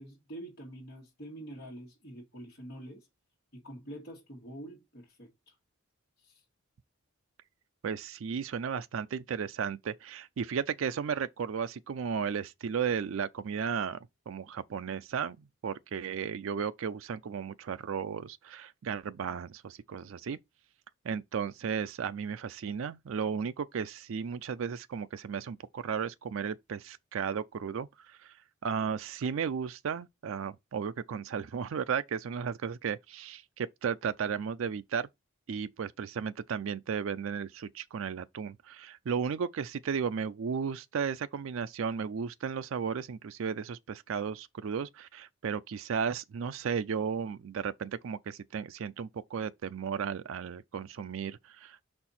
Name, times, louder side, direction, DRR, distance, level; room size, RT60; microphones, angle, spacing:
voice 1, 0.0-3.1 3.5-5.6 6.2-6.4, right 1 dB, 50° left, 1.8 m, -46 dB
voice 2, 7.8-14.0 14.3-15.4 15.6-20.4 21.0-28.3 28.6-35.1 35.5-51.8, right 6 dB, 70° right, 0.4 m, -34 dB
5.6 x 4.4 x 4.2 m
head